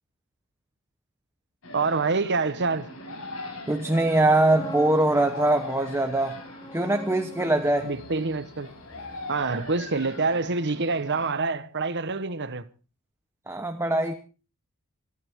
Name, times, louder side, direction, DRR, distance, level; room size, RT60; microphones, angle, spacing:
sound 1, 1.6-11.3, left 2 dB, 65° left, 5.8 m, -41 dB
voice 1, 1.7-2.9 7.8-8.7 9.3-12.6, right 3 dB, 50° right, 1.1 m, -26 dB
voice 2, 3.7-6.4 6.7-7.9 13.5-14.1, right 2 dB, 10° right, 1.0 m, -22 dB
sound 2, 3.9-9.7, left 5 dB, 50° left, 3.3 m, -50 dB
sound 3, 4.1-10.1 10.3-10.6, left 1 dB, 20° left, 1.0 m, -44 dB
27.0 x 12.0 x 3.7 m
head